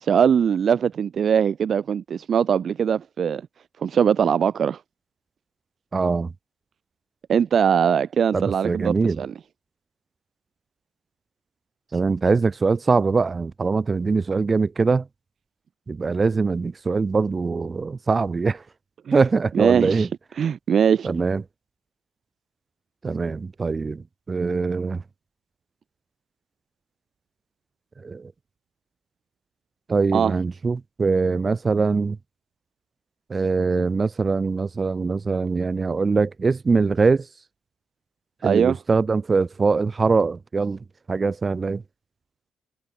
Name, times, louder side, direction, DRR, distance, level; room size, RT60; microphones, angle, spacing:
voice 1, 0.0-3.4 3.8-4.8 7.3-9.3 19.1-19.2 19.5-20.1 20.4-21.1 30.1-30.3 38.4-38.8, right 7 dB, 55° right, 2.1 m, -21 dB
voice 2, 5.9-6.3 8.3-9.2 11.9-15.1 15.9-18.6 19.1-20.1 21.0-21.4 23.0-25.0 28.0-28.3 29.9-32.2 33.3-37.3 38.4-40.8 41.1-41.8, right 4 dB, 30° right, 4.6 m, -22 dB
cardioid pair, 90°, 0 cm